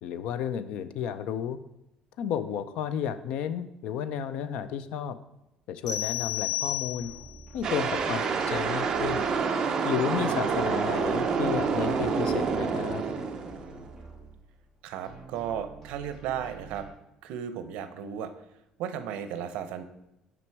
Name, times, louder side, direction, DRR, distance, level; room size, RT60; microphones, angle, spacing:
voice 1, 0.0-1.6 2.2-5.2 5.7-7.1 7.5-9.3 9.8-13.0, left 8 dB, 60° left, 13 dB, 0.4 m, -32 dB
sound 1, 5.9-7.4, left 12 dB, 35° left, 1.5 m, -32 dB
sound 2, 7.0-9.8 10.1-14.8 15.0-16.9, right 3 dB, 10° left, 1.3 m, -48 dB
sound 3, 7.6-13.9, right 5 dB, 30° right, 0.6 m, -28 dB
voice 2, 14.8-16.9 17.2-18.3 18.8-19.8, right 9 dB, 70° right, 10 dB, 0.6 m, -35 dB
6.0 x 5.2 x 4.6 m, 0.88 s
cardioid pair, 175°, 2 cm